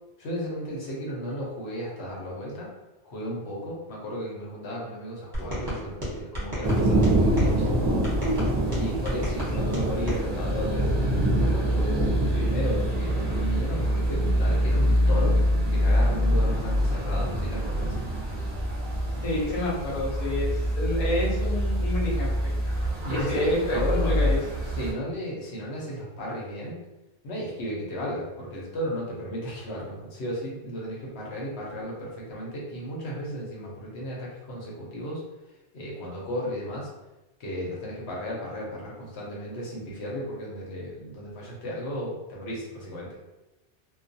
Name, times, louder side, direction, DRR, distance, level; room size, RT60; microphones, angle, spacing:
voice 1, 0.2-2.7 3.0-8.4 8.7-11.0 11.3-15.4 15.7-18.0 23.0-23.4 23.7-24.2 24.7-26.8 27.2-35.2 35.7-36.9 37.4-43.2, equal, 80° left, -4 dB, 1.0 m, -34 dB
sound 1, 5.3-7.5 8.0-10.2, equal, 25° right, 0.9 m, -33 dB
sound 2, 6.6-24.9, equal, 45° right, 0.6 m, -25 dB
voice 2, 19.2-22.5 23.1-24.7, left 1 dB, 45° left, -5 dB, 0.6 m, -29 dB
2.3 x 2.3 x 2.6 m, 1.0 s
omnidirectional pair, 1.1 m